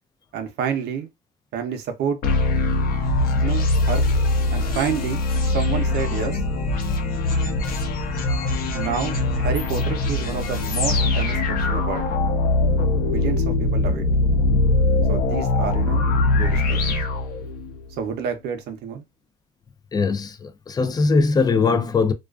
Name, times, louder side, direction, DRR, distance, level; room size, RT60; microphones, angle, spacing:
voice 1, 0.3-1.1 1.5-2.2 3.4-4.1 4.5-5.2 5.5-6.4 8.7-12.1 13.0-14.0 15.1-16.1 16.3-16.9 18.0-19.0, right 7 dB, 75° right, 0.7 m, -29 dB
sound 1, 2.2-17.8, left 2 dB, 60° left, 0.7 m, -22 dB
voice 2, 19.9-22.1, left 4 dB, 25° left, 0.4 m, -21 dB
2.4 x 2.3 x 2.3 m
cardioid pair, 110°, 17 cm